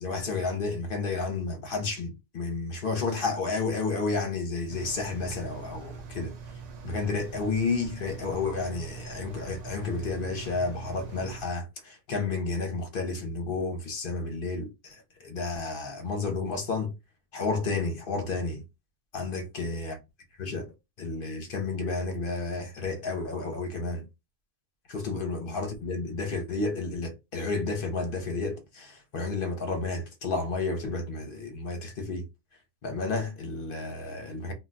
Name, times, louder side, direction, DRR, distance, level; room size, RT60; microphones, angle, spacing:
voice 1, 0.0-6.3 6.8-16.9 17.3-18.6 19.1-19.9 20.4-20.7 21.0-24.0 24.9-32.2 32.8-34.5, left 3 dB, 60° left, 0.8 m, -31 dB
Engine, 4.7-11.5, right 5 dB, 55° right, 0.5 m, -43 dB
2.2 x 2.2 x 3.8 m
omnidirectional pair, 1.1 m